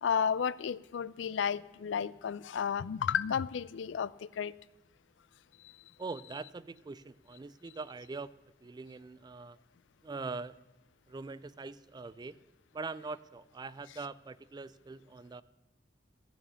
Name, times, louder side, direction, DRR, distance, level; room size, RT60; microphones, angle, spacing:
voice 1, 0.0-4.5 5.6-5.7, left 7 dB, 80° left, 20 dB, 0.4 m, -32 dB
voice 2, 6.0-8.3 8.6-9.6 10.0-10.6 11.1-12.4 12.7-15.4, right 3 dB, 20° right, 17 dB, 0.3 m, -42 dB
14.0 x 7.2 x 6.9 m, 1.0 s
head